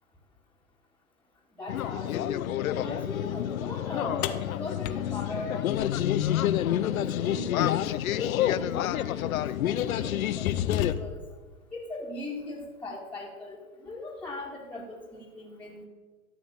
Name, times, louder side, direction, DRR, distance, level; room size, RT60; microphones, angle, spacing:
voice 1, 1.6-2.4 2.7-6.1 6.6-7.8 8.1-9.3 9.6-11.2 11.7-15.9, left 1 dB, 5° left, -5 dB, 1.8 m, -39 dB
sound 1, 1.7-10.9, left 12 dB, 70° left, 0.6 m, -28 dB
sound 2, 4.2-6.4 8.3-8.4 9.2-9.4 9.9-11.4, left 11 dB, 20° left, 0.4 m, -34 dB
12.5 x 5.3 x 7.9 m, 1.3 s
hypercardioid pair, 115°, 44 cm